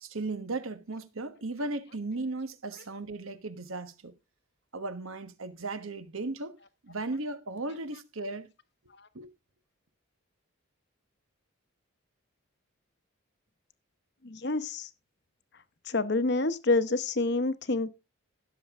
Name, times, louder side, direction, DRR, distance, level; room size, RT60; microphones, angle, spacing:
voice 1, 0.0-4.1 4.7-6.6 6.8-8.5 9.1-9.3, right 2 dB, 75° right, 1.2 m, -36 dB
voice 2, 14.2-14.9 15.9-17.9, left 3 dB, 50° left, 0.9 m, -27 dB
16.0 x 7.1 x 3.5 m
head